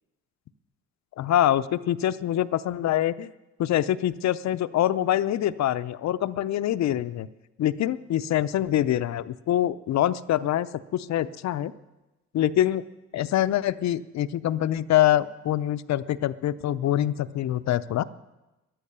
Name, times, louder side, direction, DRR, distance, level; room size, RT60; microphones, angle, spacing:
voice 1, 1.2-3.3 3.6-7.3 7.6-11.7 12.3-12.8 13.1-18.0, left 12 dB, 65° left, 15 dB, 0.6 m, -25 dB
13.5 x 11.0 x 6.8 m, 1.0 s
cardioid pair, 90°, 30 cm